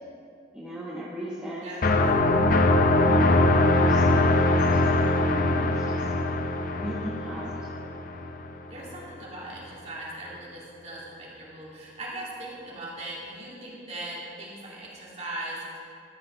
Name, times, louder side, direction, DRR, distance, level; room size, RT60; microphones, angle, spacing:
voice 1, 0.5-1.7 3.0-4.9 5.2-6.0 6.7-7.7, right 1 dB, 5° right, -7 dB, 1.2 m, -37 dB
voice 2, 1.6-2.6 5.6-6.2 8.7-15.8, right 1 dB, 35° right, -6 dB, 2.6 m, -40 dB
sound 1, 1.8-8.5, left 2 dB, 45° left, 0.6 m, -22 dB
13.0 x 6.1 x 5.8 m, 2.4 s
head